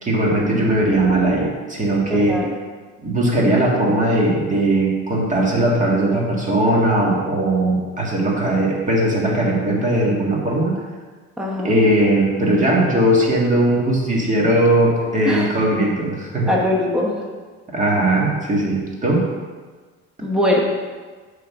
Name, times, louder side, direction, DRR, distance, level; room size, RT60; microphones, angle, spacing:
voice 1, 0.0-2.4 3.0-10.7 11.6-16.5 17.7-19.3, right 1 dB, 25° right, -3 dB, 1.8 m, -19 dB
voice 2, 2.1-2.5 11.4-11.8 15.2-15.5 16.5-17.1 20.2-20.6, left 1 dB, 5° right, -2 dB, 0.9 m, -21 dB
7.3 x 3.9 x 5.9 m, 1.4 s
cardioid pair, 140°, 29 cm